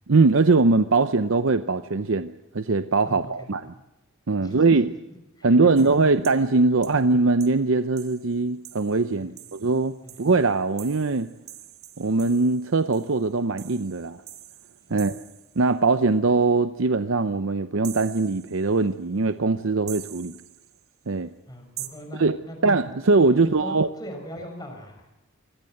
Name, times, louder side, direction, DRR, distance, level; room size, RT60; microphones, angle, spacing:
voice 1, 0.1-3.7 4.3-4.9 5.4-11.3 12.0-14.2 14.9-15.1 15.6-20.3 21.1-21.3 22.2-22.4 22.6-23.9, right 3 dB, 70° right, 11 dB, 0.7 m, -21 dB
voice 2, 3.0-3.7 4.4-5.0 5.4-6.1 9.2-9.4 10.0-10.2 14.9-15.1 21.5-22.6 23.3-25.1, equal, 20° left, 4 dB, 5.7 m, -41 dB
sound 1, 5.8-6.5 6.8-7.0 7.4-7.6 8.0-15.7 17.8-18.9 19.9-20.9 21.8-21.9, right 14 dB, 85° right, 1.6 m, -45 dB
24.0 x 18.0 x 7.8 m, 1.0 s
head